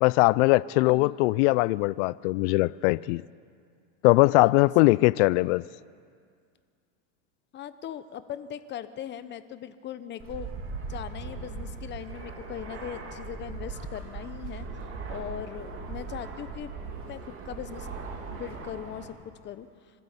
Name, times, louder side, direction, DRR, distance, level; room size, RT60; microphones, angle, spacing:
voice 1, 0.0-3.2 4.0-5.6, left 22 dB, 65° left, 0.5 m, -21 dB
voice 2, 0.8-1.1 4.1-5.2 7.5-10.5 10.9-16.7 17.0-17.9 18.3-20.0, left 10 dB, 25° left, 0.9 m, -40 dB
Fixed-wing aircraft airplane, 10.2-19.0, right 4 dB, 35° right, 3.2 m, -39 dB
25.5 x 13.0 x 8.3 m
supercardioid pair, 135°, 39 cm